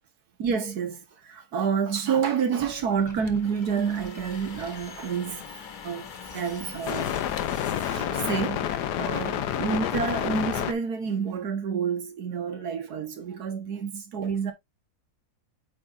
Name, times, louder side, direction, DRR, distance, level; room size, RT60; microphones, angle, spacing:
voice 1, 0.4-7.3 7.7-14.5, right 6 dB, 70° right, 2.0 m, -29 dB
sound 1, 2.6-8.0, left 2 dB, 15° left, 1.0 m, -48 dB
sound 2, 3.0-8.8, left 5 dB, 40° left, 0.8 m, -45 dB
sound 3, 5.4-10.7, left 10 dB, 85° left, 1.3 m, -30 dB
8.6 x 5.7 x 2.6 m
omnidirectional pair, 1.7 m